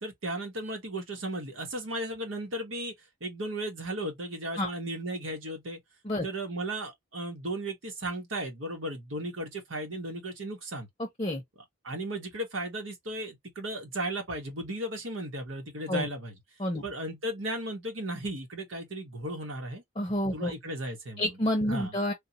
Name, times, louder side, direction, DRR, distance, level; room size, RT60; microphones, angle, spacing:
voice 1, 0.0-2.9 3.2-5.8 6.2-10.9 11.8-16.3 16.8-19.8 20.3-21.4 21.7-21.9, right 1 dB, 80° right, 1.4 m, -35 dB
voice 2, 20.0-20.5 21.2-22.1, left 1 dB, 25° left, 0.7 m, -29 dB
3.5 x 2.4 x 2.8 m
head